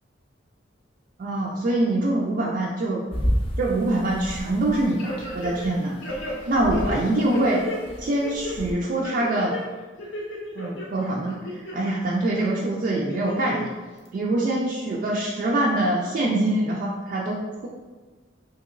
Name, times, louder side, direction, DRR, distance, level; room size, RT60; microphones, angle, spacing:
voice 1, 1.2-3.0 3.6-6.0 6.5-7.6 8.0-9.6 10.6-13.7 14.1-17.7, right 1 dB, 45° right, -3 dB, 0.3 m, -24 dB
sound 1, 3.1-8.7, equal, 30° left, 0.4 m, -32 dB
sound 2, 5.0-5.7 6.0-7.8 8.2-8.6 9.0-9.6 10.0-10.9 11.3-11.9 12.4-12.5 13.1-13.7 14.1-14.2, left 1 dB, 80° left, 0.6 m, -33 dB
2.8 x 2.8 x 2.4 m, 1.3 s
head